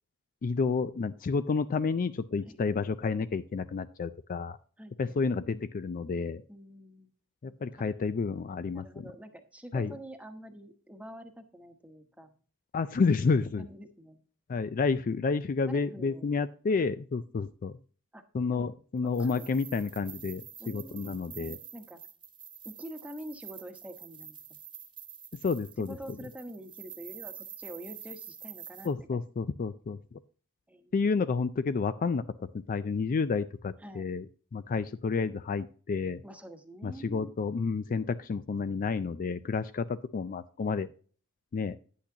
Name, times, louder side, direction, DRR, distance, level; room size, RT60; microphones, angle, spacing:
voice 1, 0.4-4.6 5.0-6.4 7.4-9.0 9.7-9.9 12.7-13.6 14.5-17.7 18.3-21.6 25.4-25.9 28.8-30.0 30.9-32.2 32.7-34.2 34.5-36.2 36.8-40.9 41.5-41.8, left 4 dB, 40° left, 13 dB, 0.4 m, -30 dB
voice 2, 2.5-2.9 4.8-5.3 6.5-7.1 7.7-7.9 8.7-12.3 13.2-14.2 15.6-16.3 18.1-18.2 18.5-18.7 19.0-19.5 20.6-21.2 21.7-22.0 22.6-24.6 25.8-29.2 30.7-30.9 33.8-34.1 36.2-37.3, equal, 5° right, 6 dB, 1.0 m, -46 dB
sound 1, 19.1-28.9, right 9 dB, 20° right, 1.3 m, -47 dB
10.0 x 8.4 x 2.8 m, 0.42 s
head